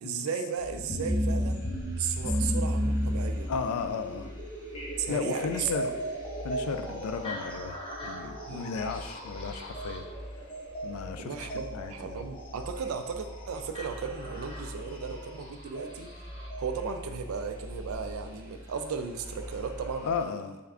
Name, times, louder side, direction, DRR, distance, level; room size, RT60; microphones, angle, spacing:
voice 1, 0.0-1.7 2.0-3.5 5.0-5.7 8.5-8.7 11.2-16.1 16.6-20.3, right 6 dB, 75° right, 7 dB, 0.3 m, -35 dB
sound 1, 0.6-20.2, equal, 15° right, 0.6 m, -45 dB
sound 2, 0.8-16.7 17.9-18.0 18.8-18.9 19.5-19.6, equal, 25° left, 0.5 m, -35 dB
voice 2, 3.5-4.3 5.1-6.0 6.4-10.1 10.8-11.5 11.7-12.2 20.0-20.6, left 5 dB, 85° left, 11 dB, 0.3 m, -34 dB
3.3 x 2.2 x 3.6 m, 1.2 s
head